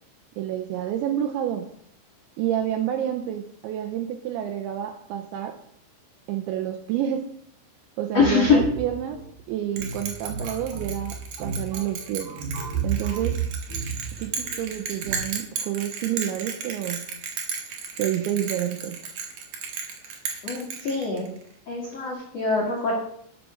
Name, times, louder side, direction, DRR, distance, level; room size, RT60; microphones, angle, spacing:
voice 1, 0.4-1.7 2.4-5.6 6.3-7.3 8.0-9.2 9.5-12.3 12.8-13.4 14.2-17.1 18.0-19.1, right 11 dB, 80° right, 6 dB, 2.7 m, -29 dB
voice 2, 8.1-8.6 20.4-21.3 21.7-22.9, left 5 dB, 75° left, -1 dB, 1.5 m, -23 dB
sound 1, 8.2-15.3, right 6 dB, 45° right, 3.1 m, -33 dB
Bell, 9.8-21.4, right 6 dB, 65° right, 2.0 m, -34 dB
11.5 x 6.3 x 6.1 m, 0.67 s
omnidirectional pair, 6.0 m